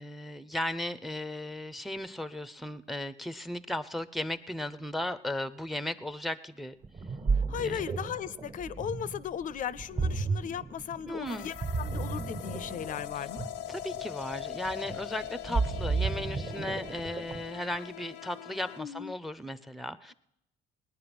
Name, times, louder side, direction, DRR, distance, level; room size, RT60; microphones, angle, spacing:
voice 1, 0.0-6.8 7.6-7.9 11.1-11.5 13.2-13.3 13.7-20.1, left 1 dB, ahead, 15 dB, 0.5 m, -36 dB
Ocean, 6.8-17.6, right 4 dB, 45° right, 1.4 m, -33 dB
voice 2, 7.3-13.5 18.8-19.1, left 9 dB, 50° left, 18 dB, 0.5 m, -37 dB
sound 1, 11.3-18.8, left 12 dB, 85° left, 0.7 m, -42 dB
20.0 x 9.7 x 5.9 m, 0.80 s
cardioid pair, 110°, 17 cm